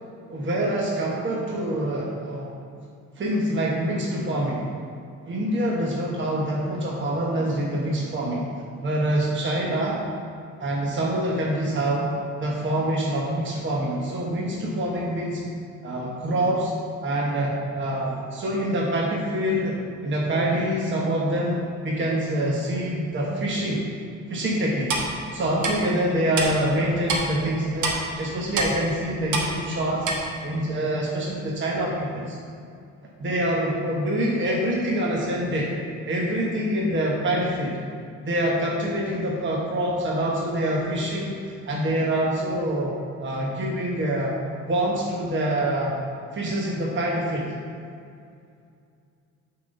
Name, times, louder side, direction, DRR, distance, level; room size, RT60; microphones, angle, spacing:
voice 1, 0.3-2.5 3.2-4.7 5.2-8.4 8.8-10.0 10.6-12.1 12.4-15.4 15.8-16.7 17.0-23.8 24.3-25.0 25.3-30.1 30.4-32.4 33.2-35.7 36.1-37.8 38.2-44.4 44.7-46.0 46.3-47.5, right 1 dB, 40° right, -3 dB, 1.0 m, -25 dB
Clock, 24.9-25.1 25.6-25.7 26.4-26.5 27.1-27.2 27.8-28.0 28.6-28.7 29.3-29.5 30.0-30.2, right 3 dB, 80° right, 1.1 m, -24 dB
7.3 x 4.0 x 5.2 m, 2.4 s
cardioid pair, 90°, 30 cm